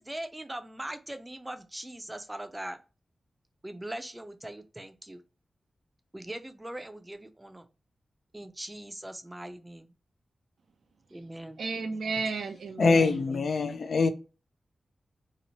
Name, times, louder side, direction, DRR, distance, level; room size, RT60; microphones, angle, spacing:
voice 1, 0.0-2.8 3.6-5.2 6.1-7.7 8.3-9.9 11.1-11.6 13.2-13.3, right 1 dB, 15° right, 0.5 m, -41 dB
voice 2, 11.6-13.2, right 4 dB, 90° right, 0.4 m, -33 dB
voice 3, 12.8-14.1, left 4 dB, 70° left, 0.4 m, -24 dB
2.9 x 2.0 x 2.7 m
cardioid pair, 70°, 0 cm